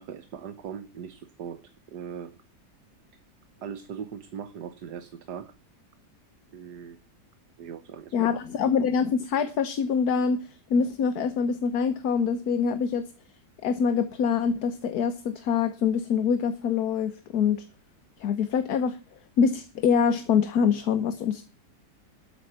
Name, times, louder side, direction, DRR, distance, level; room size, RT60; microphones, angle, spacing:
voice 1, 0.0-1.6 1.9-2.3 3.6-5.5 6.5-7.0 7.6-8.3, right 8 dB, 75° right, 11 dB, 1.6 m, -39 dB
voice 2, 8.1-10.4 10.7-13.1 13.6-17.6 18.2-19.0 19.4-21.5, left 6 dB, 65° left, 11 dB, 1.5 m, -25 dB
12.5 x 9.0 x 5.8 m, 0.36 s
omnidirectional pair, 1.8 m